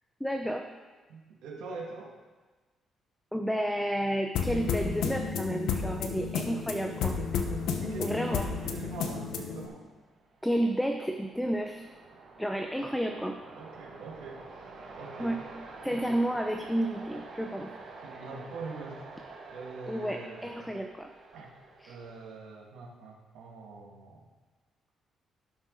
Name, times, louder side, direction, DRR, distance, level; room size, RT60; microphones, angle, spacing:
voice 1, 0.2-0.7 3.3-7.2 8.0-8.5 10.4-11.9 12.4-13.4 15.2-15.4 15.8-17.7 19.9-21.1 21.8-22.0, equal, ahead, 4 dB, 0.8 m, -31 dB
voice 2, 1.1-2.2 7.7-9.9 13.6-14.5 15.0-15.4 15.9-16.1 18.0-19.1 19.5-20.8 21.3-21.5 21.9-24.3, right 3 dB, 85° right, -3 dB, 2.1 m, -43 dB
sound 1, 4.3-9.7, left 5 dB, 85° left, 1.1 m, -32 dB
sound 2, 6.5-22.3, right 3 dB, 60° right, 2.4 m, -49 dB
17.5 x 6.3 x 4.0 m, 1.3 s
cardioid pair, 90°, 0 cm